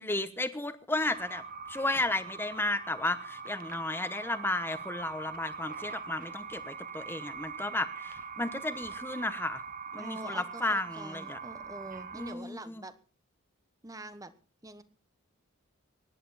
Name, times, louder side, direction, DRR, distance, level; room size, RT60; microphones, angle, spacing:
voice 1, 0.0-1.4 1.7-9.6 9.9-11.4 12.1-12.8, left 2 dB, 10° left, 11 dB, 1.1 m, -33 dB
sound 1, 1.0-12.4, right 5 dB, 45° right, 1.4 m, -42 dB
voice 2, 10.0-12.9 13.8-14.3 14.6-14.8, right 2 dB, 15° right, 12 dB, 1.1 m, -45 dB
24.0 x 11.0 x 4.2 m, 0.36 s
head